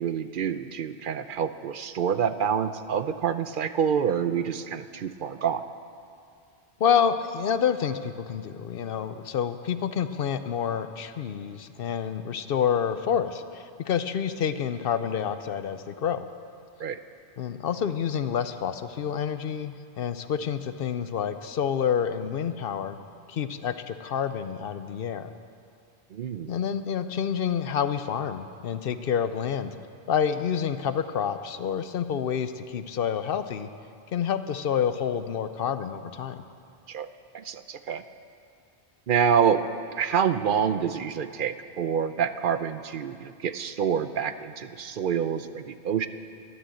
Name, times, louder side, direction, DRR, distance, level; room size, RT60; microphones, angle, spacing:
voice 1, 0.0-5.6 16.8-17.0 26.1-26.5 36.9-37.1 37.3-38.0 39.1-39.6 40.0-46.1, right 7 dB, 60° right, 11 dB, 0.7 m, -27 dB
voice 2, 6.8-16.3 17.4-23.0 23.3-25.3 26.5-29.7 30.1-33.7 34.1-36.4, left 8 dB, 65° left, 11 dB, 0.8 m, -28 dB
13.0 x 11.0 x 7.6 m, 2.4 s
omnidirectional pair, 1.1 m